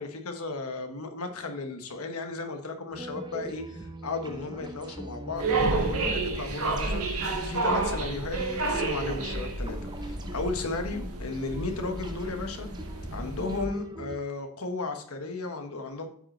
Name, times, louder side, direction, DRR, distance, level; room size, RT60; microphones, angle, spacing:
voice 1, 0.0-12.7 13.1-16.1, left 3 dB, 80° left, 5 dB, 1.2 m, -35 dB
sound 1, 2.9-14.2, right 1 dB, 20° right, 0.6 m, -42 dB
sound 2, 5.4-13.6, right 3 dB, 85° right, 1.7 m, -30 dB
8.3 x 5.2 x 4.3 m, 0.62 s
head